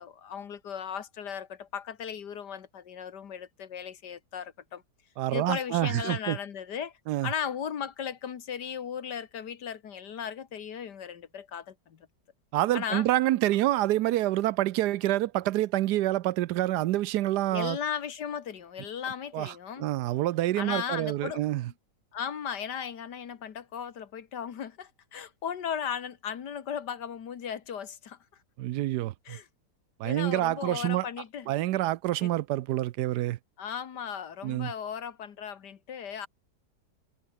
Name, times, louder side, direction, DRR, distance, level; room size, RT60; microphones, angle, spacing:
voice 1, 0.0-4.8 5.3-6.9 7.2-12.1 12.7-13.1 17.5-19.9 20.6-21.4 22.1-28.2 29.3-29.5 30.0-31.5 32.2-32.3 33.6-36.3, left 8 dB, 80° left, 2.0 m, -36 dB
voice 2, 5.2-6.4 7.1-7.3 12.5-17.8 19.3-21.7 28.6-29.4 30.0-31.1 31.5-33.4 34.4-34.7, right 15 dB, 75° right, 1.2 m, -27 dB
omnidirectional pair, 1.8 m